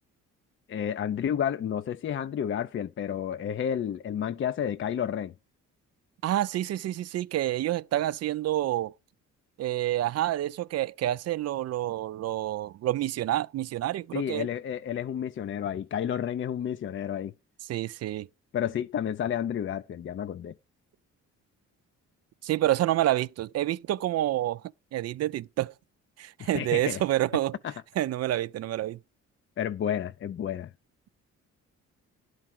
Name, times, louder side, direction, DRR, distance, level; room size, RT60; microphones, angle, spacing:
voice 1, 0.7-5.3 14.1-17.3 18.5-20.5 26.4-27.0 27.6-27.7 29.6-30.7, left 9 dB, 40° left, 0.5 m, -31 dB
voice 2, 6.2-8.9 9.6-14.5 17.7-18.3 22.4-24.6 24.9-25.7 26.2-27.6 28.0-29.0, right 14 dB, 55° right, 0.4 m, -28 dB
11.0 x 4.7 x 7.5 m
cardioid pair, 90°, 30 cm